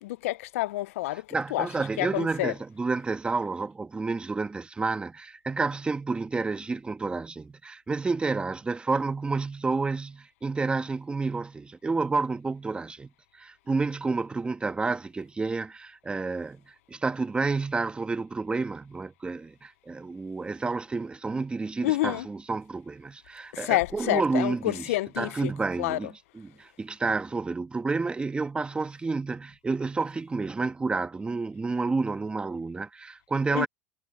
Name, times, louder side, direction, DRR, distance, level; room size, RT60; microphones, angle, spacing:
voice 1, 0.0-1.7 2.0-2.5 21.8-22.3 23.5-25.5 25.8-26.0 33.5-33.7, left 17 dB, 90° left, 0.4 m, -28 dB
voice 2, 1.3-33.7, right 3 dB, 15° right, 1.3 m, -30 dB
supercardioid pair, 120°, 7 cm